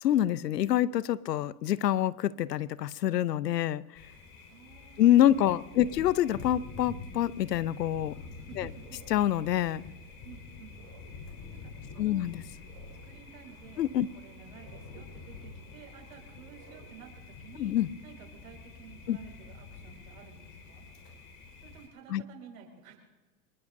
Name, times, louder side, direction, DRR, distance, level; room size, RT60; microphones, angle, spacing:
voice 1, 0.0-3.8 5.0-8.1 8.6-8.7 9.1-9.8 12.0-12.4 13.8-14.1 17.6-17.9 19.1-19.2 22.1-22.2, left 12 dB, 85° left, 20 dB, 0.7 m, -26 dB
Thunder, 3.9-21.9, left 4 dB, 40° left, 4.5 m, -47 dB
voice 2, 4.5-6.1 8.4-9.0 10.2-10.7 11.6-12.3 13.0-17.7 18.0-20.9 21.6-23.0, right 8 dB, 65° right, 2 dB, 5.2 m, -53 dB
sound 1, 8.4-17.1, right 8 dB, 45° right, 4.4 m, -58 dB
25.5 x 20.5 x 2.6 m, 1.1 s
hypercardioid pair, 105°, 47 cm